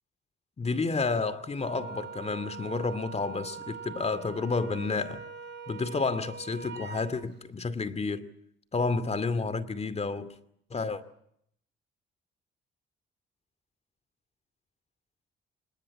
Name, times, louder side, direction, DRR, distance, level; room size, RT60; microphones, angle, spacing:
voice 1, 0.6-5.2 5.7-8.3 8.7-10.3 10.7-11.0, left 4 dB, 30° left, 2.4 m, -30 dB
Wind instrument woodwind instrument, 1.6-7.1, right 6 dB, 65° right, 4.4 m, -42 dB
26.5 x 20.5 x 9.7 m
cardioid pair, 90°, 20 cm